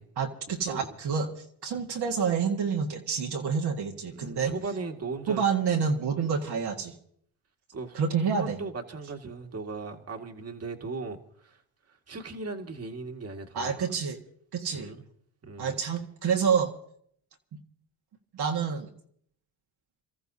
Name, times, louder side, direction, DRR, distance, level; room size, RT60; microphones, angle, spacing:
voice 1, 0.2-1.3 1.6-4.5 5.3-7.0 7.9-8.6 13.5-14.2 14.5-14.9 15.6-16.7 17.5-17.6 18.3-18.9, right 6 dB, 60° right, 1.8 m, -28 dB
voice 2, 4.1-5.4 7.7-8.0 8.3-11.6 12.1-13.9 14.7-15.0 15.4-15.8, right 3 dB, 35° right, 1.9 m, -38 dB
29.5 x 14.0 x 2.8 m
supercardioid pair, 70°, 44 cm